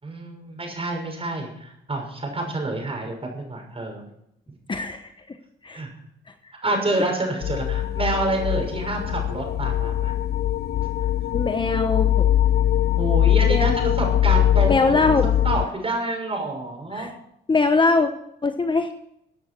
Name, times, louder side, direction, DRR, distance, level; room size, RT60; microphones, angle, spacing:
voice 1, 0.0-4.0 5.7-5.9 6.6-10.1 13.0-17.1, right 2 dB, 30° right, 2 dB, 6.3 m, -28 dB
voice 2, 4.7-5.1 5.6-5.8 11.3-12.3 13.4-13.8 14.6-15.3 16.9-17.1 17.5-18.1 18.4-18.9, left 3 dB, 25° left, 7 dB, 1.1 m, -22 dB
sound 1, 7.4-15.7, left 11 dB, 55° left, 0.5 m, -22 dB
16.0 x 9.3 x 6.3 m, 0.77 s
cardioid pair, 90°, 20 cm